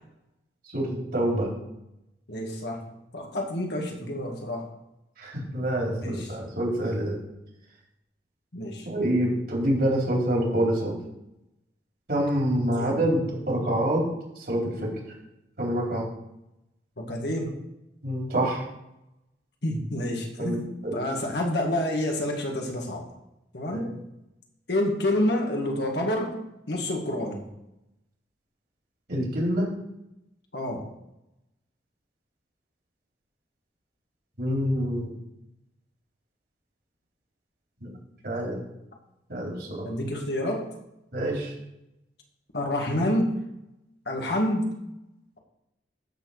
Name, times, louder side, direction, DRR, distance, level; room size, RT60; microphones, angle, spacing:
voice 1, 0.7-1.5 5.2-7.2 8.9-10.9 12.1-14.1 14.4-15.0 15.6-16.1 18.0-18.6 20.4-21.0 23.7-23.9 29.1-29.7 34.4-35.1 37.8-37.9 38.2-38.6 39.3-39.9 41.1-41.5, right 1 dB, 60° right, -2 dB, 3.8 m, -26 dB
voice 2, 2.3-4.7 5.9-6.3 8.5-8.9 12.6-13.0 17.0-17.6 19.6-20.6 20.9-23.1 23.5-23.9 24.7-26.3 26.7-27.5 30.5-30.8 39.8-40.7 42.5-43.3 44.1-44.7, left 1 dB, 65° left, 1 dB, 1.9 m, -28 dB
13.0 x 4.5 x 6.5 m, 0.88 s
head